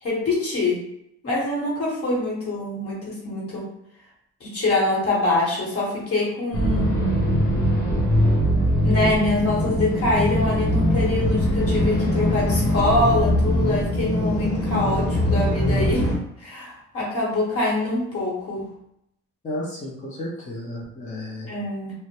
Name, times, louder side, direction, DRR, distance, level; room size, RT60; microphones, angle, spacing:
voice 1, 0.0-0.8 1.2-3.7 4.4-6.9 8.7-16.0 16.4-18.6 21.5-21.9, left 2 dB, 50° left, -4 dB, 1.1 m, -24 dB
sound 1, 6.5-16.2, equal, 65° left, 0.8 m, -21 dB
voice 2, 19.4-21.5, left 1 dB, 25° left, -5 dB, 0.5 m, -33 dB
2.1 x 2.0 x 2.8 m, 0.76 s
cardioid pair, 90°, 30 cm